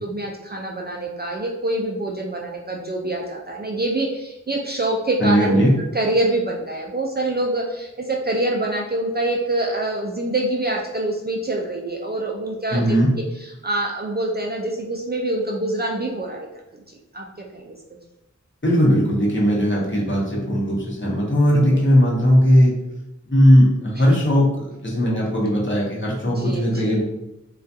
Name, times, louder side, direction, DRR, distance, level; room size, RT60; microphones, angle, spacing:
voice 1, 0.0-5.6 5.9-13.0 13.4-16.5 16.9-17.3 17.5-17.7 21.7-21.8 24.0-24.1 26.2-27.0, right 2 dB, 35° right, -1 dB, 0.4 m, -25 dB
voice 2, 5.2-5.7 12.7-13.1 18.6-22.7 23.3-27.0, equal, 40° left, -5 dB, 0.8 m, -18 dB
2.3 x 2.3 x 2.6 m, 0.92 s
wide cardioid pair, 40°, 31 cm